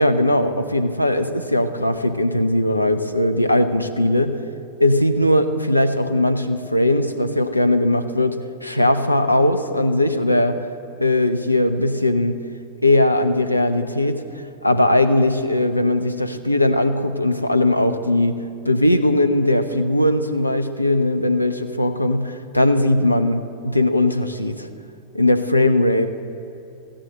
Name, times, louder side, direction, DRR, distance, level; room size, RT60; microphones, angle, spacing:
voice 1, 0.0-4.4 4.8-10.7 11.0-12.4 12.8-14.2 14.6-18.4 18.6-24.7 25.1-26.1, left 1 dB, 85° left, 10 dB, 0.7 m, -19 dB
14.5 x 10.0 x 7.6 m, 2.7 s
figure-of-eight pair, 90°, 0 cm